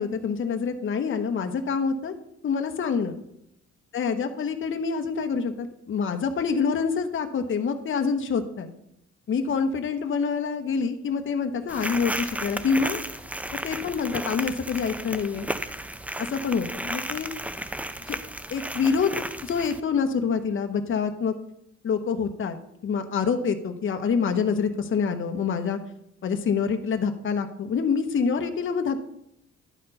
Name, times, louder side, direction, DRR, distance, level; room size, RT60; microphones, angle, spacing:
voice 1, 0.0-2.1 2.4-3.2 3.9-8.7 9.3-13.0 13.6-15.5 16.3-17.3 18.1-18.2 18.5-19.1 19.4-21.3 21.8-22.6 22.8-25.8 26.2-29.0, left 5 dB, 40° left, 6 dB, 0.9 m, -26 dB
sound 1, 11.7-19.8, right 1 dB, 5° right, 0.5 m, -34 dB
11.0 x 4.3 x 5.4 m, 0.78 s
cardioid pair, 90°, 30 cm